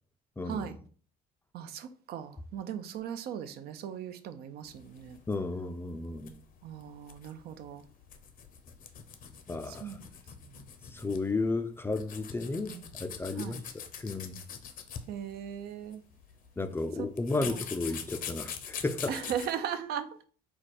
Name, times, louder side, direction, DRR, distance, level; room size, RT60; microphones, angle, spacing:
voice 1, 0.4-0.8 5.3-6.4 9.5-10.0 10.9-14.4 16.6-19.2, left 3 dB, 15° left, 0.4 m, -33 dB
voice 2, 1.5-5.2 6.6-7.8 9.7-10.0 12.7-12.8 13.4-13.6 15.1-16.0 17.0-17.1 17.4-17.5 19.1-20.2, right 9 dB, 70° right, 0.5 m, -38 dB
sound 1, 4.6-19.5, left 7 dB, 55° left, 0.7 m, -44 dB
4.8 x 2.3 x 4.1 m
cardioid pair, 110°, 17 cm